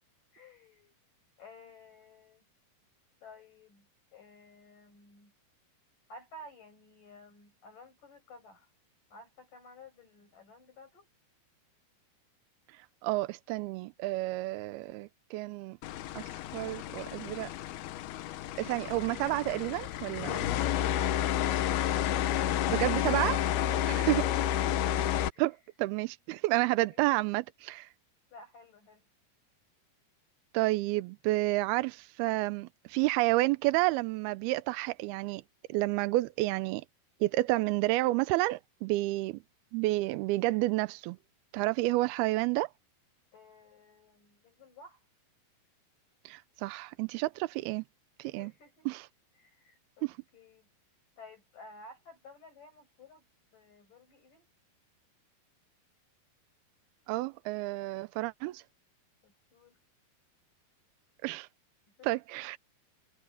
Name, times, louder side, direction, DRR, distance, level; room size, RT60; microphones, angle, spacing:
voice 1, 0.3-1.0 1.4-2.4 3.2-5.3 6.1-8.7 9.1-11.1 25.3-25.5 26.6-27.3 28.3-29.1 43.3-45.0 48.2-49.0 49.4-50.7 51.2-53.3 53.5-54.5 59.2-59.8 62.0-62.2, left 2 dB, 55° left, 8.9 m, -54 dB
voice 2, 12.7-15.8 16.2-17.5 18.6-20.5 22.7-23.5 24.1-24.2 25.4-27.9 30.5-35.4 35.7-36.8 37.2-39.4 39.7-41.2 41.5-42.7 46.3-47.8 48.2-48.5 48.9-49.1 50.0-50.2 57.1-58.6 61.2-61.5 62.0-62.6, right 20 dB, 90° right, 2.6 m, -30 dB
sound 1, 15.8-25.3, left 11 dB, 85° left, 3.0 m, -31 dB
omnidirectional pair, 4.4 m